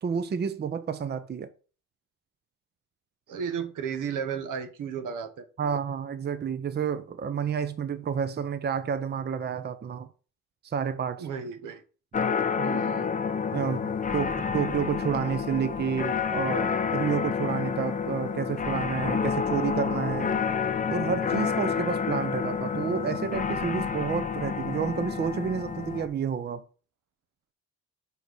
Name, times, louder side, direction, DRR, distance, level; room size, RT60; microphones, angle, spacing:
voice 1, 0.0-1.5 5.6-10.1 10.6-11.3 13.5-20.4 20.9-26.6, right 7 dB, 30° right, 0.6 m, -30 dB
voice 2, 3.3-5.8 11.2-11.8 12.6-13.2, right 7 dB, 75° right, 1.2 m, -34 dB
sound 1, 12.1-26.1, left 6 dB, 25° left, 0.7 m, -29 dB
5.4 x 4.6 x 6.1 m
cardioid pair, 90°, 31 cm